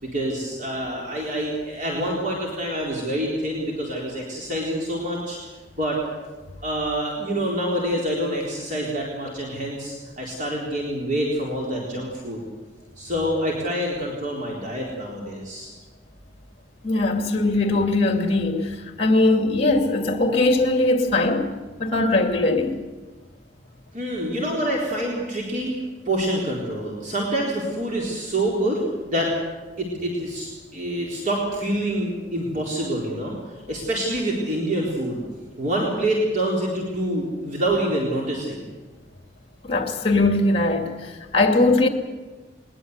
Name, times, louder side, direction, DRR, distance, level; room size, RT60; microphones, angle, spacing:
voice 1, 0.0-5.4 5.8-6.0 6.6-12.4 13.0-15.7 23.9-29.3 29.8-33.3 33.7-35.2 35.6-38.7, right 1 dB, 45° right, 4.0 m, -26 dB
voice 2, 16.8-21.5 21.8-22.8 39.6-41.9, left 2 dB, 35° left, 2.3 m, -20 dB
21.0 x 21.0 x 8.1 m
head